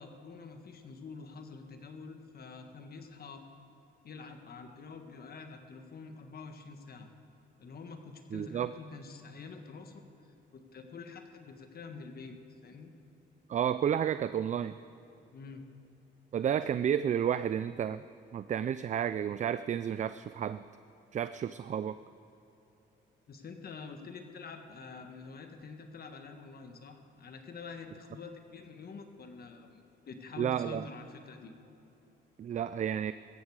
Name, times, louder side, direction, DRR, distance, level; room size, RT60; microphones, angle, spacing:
voice 1, 0.0-3.4 4.0-7.1 7.6-10.0 10.5-12.3 12.6-12.9 15.3-15.7 23.3-29.8 30.0-31.5, left 4 dB, 50° left, 6 dB, 1.5 m, -47 dB
voice 2, 8.3-8.7 13.5-14.7 16.3-18.0 18.3-20.6 21.1-22.0 30.4-30.8 32.4-33.1, right 9 dB, 40° right, 13 dB, 0.4 m, -31 dB
17.0 x 14.0 x 4.8 m, 2.9 s
cardioid pair, 90°, 20 cm